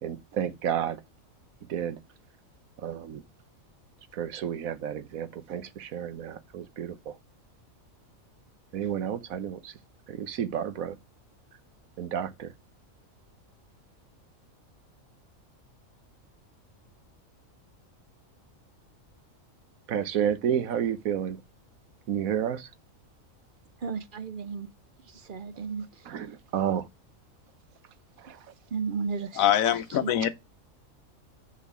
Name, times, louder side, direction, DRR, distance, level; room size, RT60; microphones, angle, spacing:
voice 1, 0.0-1.0 1.7-2.0 2.8-3.2 4.1-7.2 8.7-9.7 10.1-11.0 12.0-12.5 19.9-21.4 22.1-22.7 26.1-26.9 28.2-28.4, right 9 dB, 90° right, 1.3 m, -31 dB
voice 2, 23.8-24.7 25.0-26.1 28.7-29.5 29.9-30.1, right 5 dB, 50° right, 0.7 m, -34 dB
voice 3, 29.4-30.3, left 11 dB, 85° left, 1.2 m, -23 dB
6.9 x 4.7 x 6.0 m
omnidirectional pair, 1.4 m